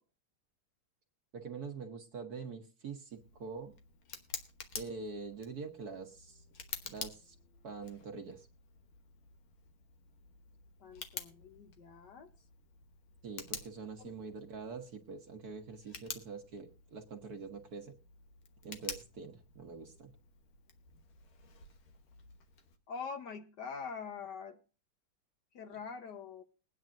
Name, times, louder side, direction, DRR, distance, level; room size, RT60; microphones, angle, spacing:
voice 1, 1.3-3.7 4.7-6.4 6.8-7.3 7.6-8.5 13.2-17.9 18.6-20.1, right 4 dB, 55° right, 5 dB, 1.3 m, -45 dB
Tick, 3.1-22.8, left 7 dB, 85° left, 2.0 m, -50 dB
voice 2, 10.8-12.3 14.0-14.1 22.9-24.6 25.5-26.4, left 5 dB, 60° left, 7 dB, 1.4 m, -44 dB
22.0 x 9.4 x 2.5 m, 0.34 s
omnidirectional pair, 2.3 m